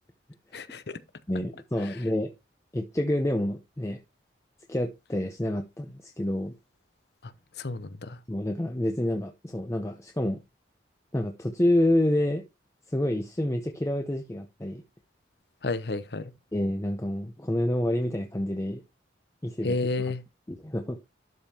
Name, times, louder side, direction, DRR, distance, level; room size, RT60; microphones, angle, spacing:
voice 1, 0.5-1.0 7.2-7.3 7.6-8.2 15.6-16.3 19.6-20.2, left 3 dB, 60° left, 0.7 m, -31 dB
voice 2, 1.3-2.3 2.7-4.0 4.7-6.5 8.3-10.4 11.1-12.4 12.9-14.8 16.5-18.8 19.4-19.8 20.5-21.0, left 1 dB, 15° left, 0.6 m, -28 dB
12.0 x 5.2 x 2.9 m
head